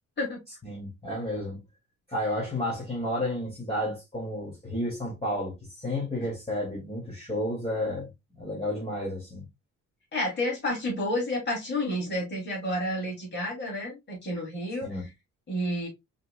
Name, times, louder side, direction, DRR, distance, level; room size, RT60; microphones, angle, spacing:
voice 1, 0.6-1.6 2.1-9.5 14.8-15.0, left 1 dB, 20° left, 2.5 m, -32 dB
voice 2, 10.1-15.1 15.5-15.9, left 1 dB, 35° left, 3.2 m, -30 dB
5.4 x 3.8 x 2.3 m
cardioid pair, 90°, 30 cm